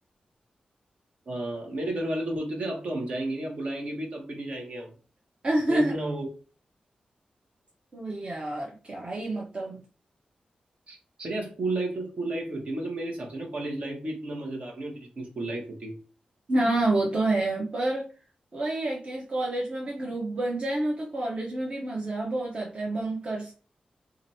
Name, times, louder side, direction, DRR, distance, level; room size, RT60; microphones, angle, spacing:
voice 1, 1.3-4.9 5.7-6.3 10.9-11.0 11.2-15.9, right 1 dB, 65° right, 1 dB, 1.2 m, -32 dB
voice 2, 5.4-5.9 7.9-9.8 16.5-18.1 18.5-23.5, right 2 dB, 45° right, -3 dB, 0.9 m, -28 dB
2.9 x 2.6 x 4.1 m, 0.36 s
wide cardioid pair, 95°, 3 cm